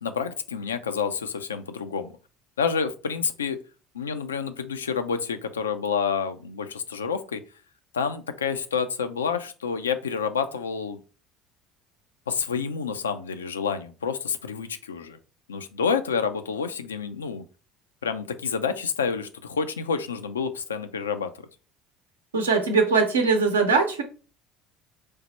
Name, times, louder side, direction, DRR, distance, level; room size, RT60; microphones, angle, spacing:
voice 1, 0.0-2.1 2.6-3.6 3.9-7.4 7.9-11.0 12.3-15.2 15.5-17.4 18.0-21.3, left 6 dB, 85° left, 9 dB, 0.3 m, -28 dB
voice 2, 22.3-24.0, right 4 dB, 85° right, 4 dB, 0.6 m, -21 dB
3.3 x 2.0 x 4.1 m, 0.36 s
figure-of-eight pair, 65°, 0 cm